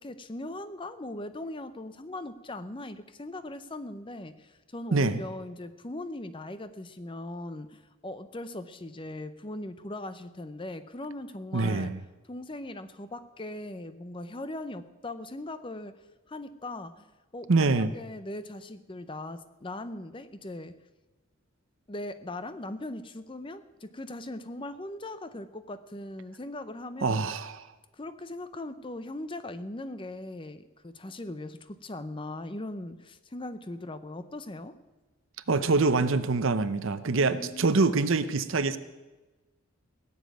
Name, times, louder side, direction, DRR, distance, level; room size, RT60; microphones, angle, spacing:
voice 1, 0.0-11.9 12.3-16.0 16.3-20.8 21.9-27.2 27.9-34.8 37.3-37.7, left 1 dB, 20° left, 12 dB, 0.6 m, -39 dB
voice 2, 4.9-5.2 11.5-12.0 17.5-17.9 27.0-27.6 35.5-38.8, right 3 dB, 60° right, 13 dB, 0.7 m, -25 dB
17.0 x 7.2 x 9.3 m, 1.2 s
head